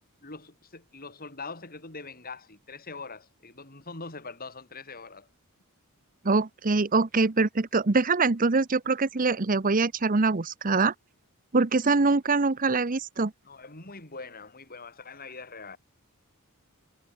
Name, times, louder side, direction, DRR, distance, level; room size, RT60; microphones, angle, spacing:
voice 1, 0.2-5.3 13.4-15.8, left 4 dB, 40° left, 5.9 m, -43 dB
voice 2, 6.2-10.9 11.5-13.3, right 3 dB, 40° right, 0.8 m, -24 dB
head